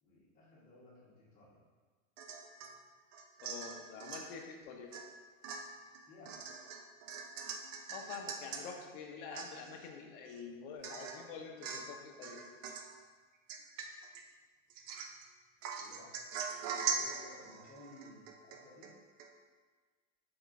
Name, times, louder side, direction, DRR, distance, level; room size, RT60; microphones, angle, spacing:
voice 1, 0.0-1.6 6.0-6.5 15.8-16.1 16.7-18.9, left 1 dB, 20° left, -7 dB, 1.2 m, -57 dB
Domestic sounds home sounds / Chink clink / Drip, 2.2-2.7 3.1-4.3 4.9-5.1 5.4-8.6 9.0-9.1 9.3-9.9 10.3-10.4 10.8-11.2 11.6-12.0 12.2-12.9 13.5-14.2 14.7-15.2 15.6-18.9 19.2-19.3, right 6 dB, 70° right, 0.6 m, -42 dB
voice 2, 3.4-4.9 7.9-12.4, left 5 dB, 45° left, 2 dB, 0.6 m, -47 dB
4.8 x 3.8 x 2.5 m, 1.4 s
supercardioid pair, 160°, 39 cm